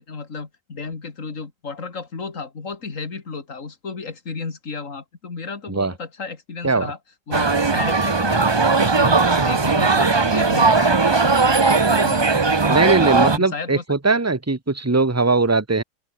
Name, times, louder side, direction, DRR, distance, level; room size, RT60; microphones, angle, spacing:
voice 1, 0.0-7.0 7.3-12.7 13.2-14.2, left 4 dB, 45° left, 2.9 m, -33 dB
sound 1, 7.3-13.4, right 4 dB, 35° right, 0.4 m, -18 dB
voice 2, 12.7-15.8, right 3 dB, 10° right, 1.3 m, -20 dB
open air
omnidirectional pair, 1.9 m